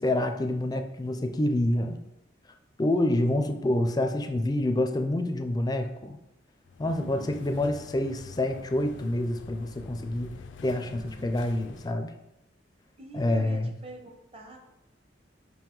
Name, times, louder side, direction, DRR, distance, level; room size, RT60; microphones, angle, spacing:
voice 1, 0.0-2.0 2.8-6.2 6.8-10.3 10.6-12.1 13.1-13.7, left 1 dB, 20° left, 7 dB, 0.4 m, -27 dB
sound 1, 6.6-11.9, left 4 dB, 85° left, 0.4 m, -47 dB
voice 2, 6.8-7.7 10.9-12.1 13.0-14.6, right 2 dB, 30° right, 3 dB, 0.8 m, -47 dB
5.5 x 4.6 x 3.8 m, 0.89 s
head